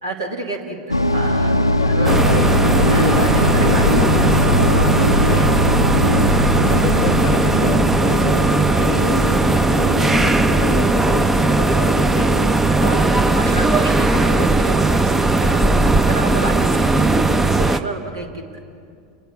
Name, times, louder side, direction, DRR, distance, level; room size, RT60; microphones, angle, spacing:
voice 1, 0.0-2.2 2.9-4.5 6.7-6.9 12.8-15.6 16.1-17.2 17.5-18.5, right 2 dB, 70° right, 3 dB, 2.6 m, -29 dB
sound 1, 0.9-17.6, left 1 dB, 90° left, 0.6 m, -22 dB
voice 2, 1.8-2.7 3.0-3.2 5.2-5.8 6.6-12.4, left 11 dB, 45° left, 15 dB, 0.8 m, -31 dB
sound 2, 2.0-17.8, right 3 dB, 10° right, 0.7 m, -17 dB
29.0 x 21.5 x 5.0 m, 2.3 s
figure-of-eight pair, 85°, 2 cm